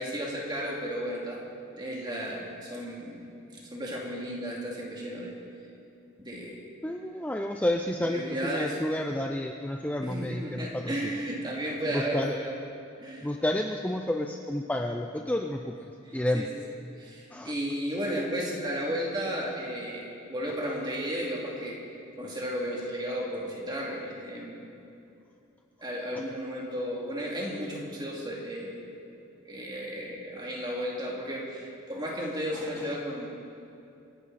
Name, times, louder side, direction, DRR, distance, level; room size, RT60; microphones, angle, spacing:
voice 1, 0.0-1.4 1.8-3.2 3.5-5.3 6.2-6.6 8.0-8.8 10.0-12.5 13.0-13.3 16.0-16.5 17.0-21.8 22.2-24.6 25.8-28.8 29.4-33.3, equal, 20° right, -3 dB, 2.7 m, -34 dB
voice 2, 6.8-11.1 11.9-12.4 13.2-15.7 16.1-16.5 17.3-17.5 26.1-26.2, left 1 dB, 5° left, 3 dB, 0.5 m, -30 dB
27.0 x 11.5 x 4.2 m, 2.7 s
head